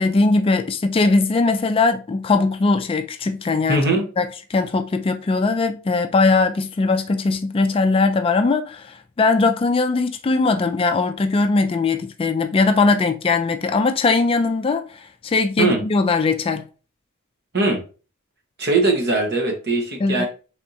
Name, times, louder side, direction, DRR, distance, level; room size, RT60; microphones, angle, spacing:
voice 1, 0.0-3.8 4.2-16.6 20.0-20.3, left 3 dB, 25° left, 0.3 m, -20 dB
voice 2, 3.7-4.1 15.6-15.8 17.5-17.8 18.6-20.3, right 2 dB, 50° right, 1.1 m, -20 dB
4.3 x 3.5 x 2.6 m
head